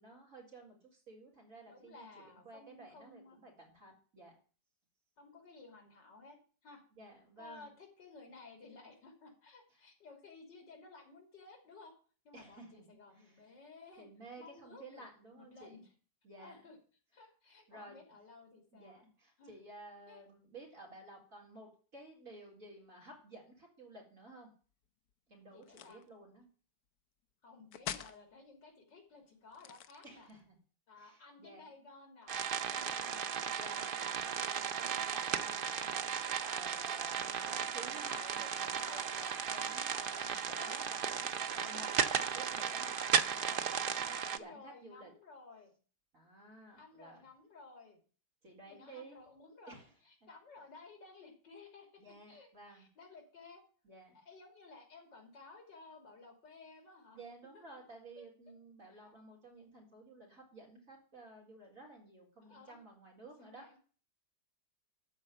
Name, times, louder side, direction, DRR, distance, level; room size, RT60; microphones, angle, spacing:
voice 1, 0.0-4.3 6.9-7.7 12.3-13.5 14.0-15.9 16.2-16.6 17.7-18.0 18.7-24.5 25.3-26.5 30.0-30.6 30.9-31.6 33.5-34.0 34.5-45.1 46.1-47.3 48.4-49.2 49.7-49.9 52.0-52.9 53.8-54.2 57.1-63.7, right 2 dB, 45° right, -2 dB, 4.5 m, -54 dB
voice 2, 1.7-3.4 5.2-6.8 7.4-11.9 12.3-14.1 14.4-15.0 15.4-15.9 16.4-16.8 17.1-19.1 19.4-19.5 20.1-20.2 25.5-26.0 27.4-30.3 30.9-32.3 32.7-33.3 33.8-34.1 37.2-39.7 40.5-40.8 42.1-42.3 44.1-45.7 46.8-48.0 48.7-49.8 50.0-52.0 52.3-53.6 54.1-57.2 58.2-58.3 58.9-59.1 62.4-62.8 63.4-63.8, left 3 dB, 80° left, 2 dB, 3.6 m, -56 dB
sound 1, 25.6-26.1 27.7-28.2 29.5-30.4, left 10 dB, 65° left, 1.1 m, -44 dB
sound 2, 32.3-44.4, right 7 dB, 80° right, 0.4 m, -35 dB
13.0 x 4.7 x 8.7 m, 0.41 s
omnidirectional pair, 1.9 m